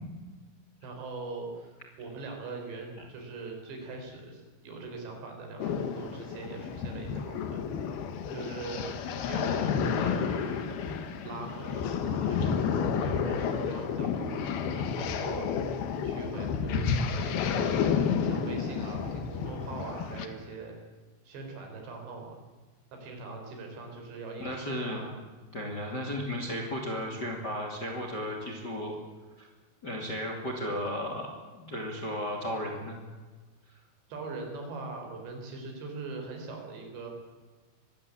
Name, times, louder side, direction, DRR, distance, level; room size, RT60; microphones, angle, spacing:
voice 1, 0.8-7.7 8.3-8.9 9.3-10.7 11.2-17.9 18.2-20.8 21.2-22.4 22.9-25.1 34.1-37.1, right 3 dB, 65° right, 2 dB, 6.6 m, -41 dB
sound 1, 5.6-20.3, left 6 dB, 65° left, 3.1 m, -31 dB
voice 2, 24.4-25.0 25.5-29.0 29.4-29.5 29.8-33.0, equal, 30° left, 2 dB, 2.3 m, -34 dB
23.0 x 16.0 x 8.7 m, 1.3 s
omnidirectional pair, 5.4 m